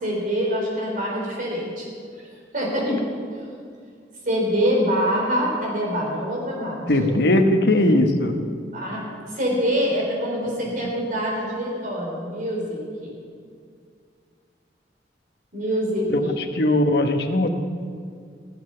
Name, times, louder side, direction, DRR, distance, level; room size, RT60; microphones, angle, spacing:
voice 1, 0.0-1.9 2.5-3.0 3.3-3.4 4.2-7.1 8.7-13.2 15.5-16.4, equal, 50° right, -2 dB, 4.0 m, -25 dB
voice 2, 6.9-8.4 16.1-17.5, left 1 dB, 65° left, 5 dB, 1.1 m, -19 dB
16.0 x 8.0 x 6.8 m, 2.2 s
head